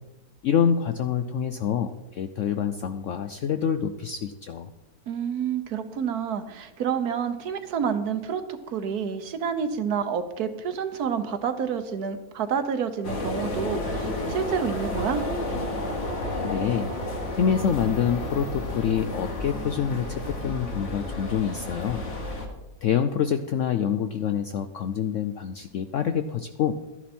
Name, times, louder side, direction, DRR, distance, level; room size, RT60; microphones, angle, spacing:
voice 1, 0.4-4.7 16.4-16.9 17.4-22.0 22.8-26.7, left 8 dB, 70° left, 9 dB, 0.7 m, -26 dB
voice 2, 5.1-15.2, right 7 dB, 65° right, 9 dB, 1.3 m, -29 dB
sound 1, 13.0-22.5, left 1 dB, 45° left, 1.9 m, -31 dB
13.0 x 10.0 x 4.3 m, 1.0 s
omnidirectional pair, 1.8 m